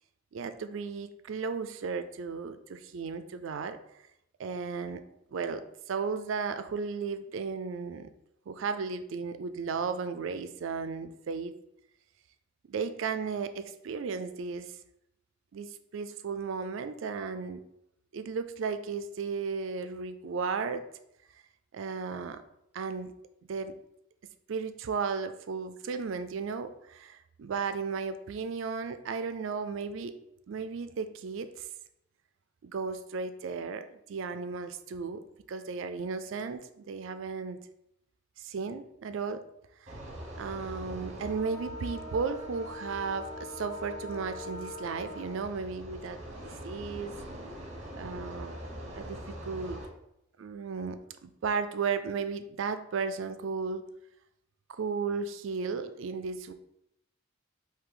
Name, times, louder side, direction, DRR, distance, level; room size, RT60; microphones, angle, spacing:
voice 1, 0.3-3.8 4.4-5.0 5.3-8.1 8.5-11.6 12.7-14.7 15.5-17.6 18.1-20.9 21.7-22.4 22.7-23.1 23.5-23.8 24.5-30.2 30.5-31.7 32.6-35.2 35.5-37.6 38.4-39.4 39.8-39.9 40.4-46.2 46.4-47.1 48.0-48.6 48.9-49.9 50.4-51.0 51.2-53.8 54.7-56.5, right 5 dB, 65° right, 11 dB, 0.4 m, -35 dB
sound 1, 39.9-49.8, equal, 35° right, 1.0 m, -42 dB
3.8 x 2.7 x 4.8 m, 0.80 s
head